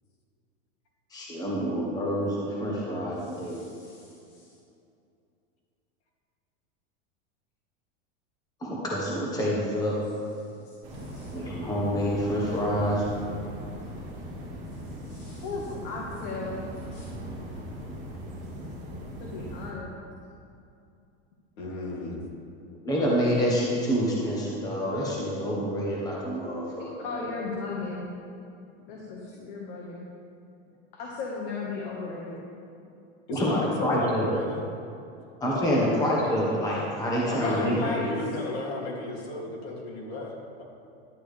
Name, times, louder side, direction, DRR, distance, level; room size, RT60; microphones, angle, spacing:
voice 1, 1.1-3.6 8.6-10.0 11.3-13.0 22.8-27.3 33.3-34.3 35.4-37.8, equal, 10° left, -5 dB, 1.4 m, -27 dB
voice 2, 3.2-4.5 10.9-11.3 15.0-16.6 16.9-17.0 19.2-19.9 27.0-28.1 28.9-30.1 30.9-32.4 37.4-38.1, left 4 dB, 50° left, -3 dB, 1.6 m, -36 dB
sound 1, 10.8-19.7, equal, 20° right, 2.2 m, -39 dB
voice 3, 21.6-22.2 33.3-34.6 35.7-35.9 37.3-40.6, left 2 dB, 70° left, -3 dB, 2.8 m, -35 dB
11.5 x 10.0 x 3.4 m, 2.5 s
supercardioid pair, 165°, 33 cm